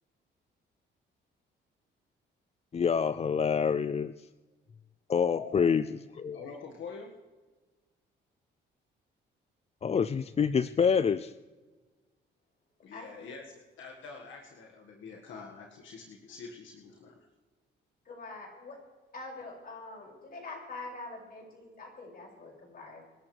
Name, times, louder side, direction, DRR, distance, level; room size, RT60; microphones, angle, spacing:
voice 1, 2.7-4.3 5.1-6.4 9.8-11.3, left 6 dB, 30° left, 14 dB, 0.5 m, -27 dB
voice 2, 5.3-5.8 6.3-7.2 12.8-17.3, left 5 dB, 75° left, 1 dB, 1.8 m, -45 dB
voice 3, 18.1-18.8 19.1-23.0, left 3 dB, 45° left, -1 dB, 6.2 m, -44 dB
27.0 x 12.0 x 3.4 m, 1.3 s
cardioid pair, 90°, 20 cm